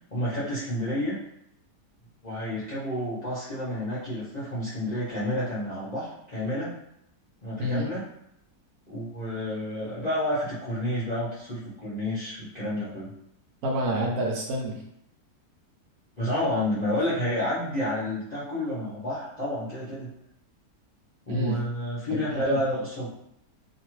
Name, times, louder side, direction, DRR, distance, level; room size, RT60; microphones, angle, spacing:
voice 1, 0.1-1.2 2.2-6.8 7.4-8.0 8.9-13.1 16.2-20.1 21.3-23.1, left 1 dB, 45° left, -10 dB, 0.6 m, -30 dB
voice 2, 13.6-14.8 21.3-21.6 22.1-22.6, right 1 dB, 70° right, -1 dB, 1.0 m, -28 dB
2.8 x 2.3 x 3.0 m, 0.75 s
omnidirectional pair, 1.8 m